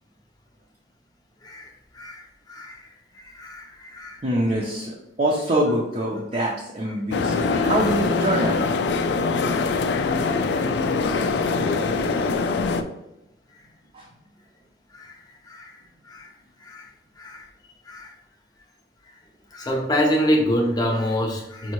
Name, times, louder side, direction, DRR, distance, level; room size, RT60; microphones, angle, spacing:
voice 1, 1.4-2.9 3.1-4.2 8.9-9.2 9.5-9.7 10.6-10.7 12.0-12.1 14.9-15.2 15.4-15.8 16.0-16.3 16.6-16.9 17.2-17.5 17.9-18.1 19.5-21.7, equal, 20° left, 0 dB, 0.7 m, -27 dB
voice 2, 4.2-8.6 13.9-14.1, right 1 dB, 35° right, -3 dB, 0.5 m, -25 dB
sound 1, 7.1-12.8, left 4 dB, 70° left, 0.3 m, -23 dB
5.4 x 2.7 x 2.9 m, 0.89 s
head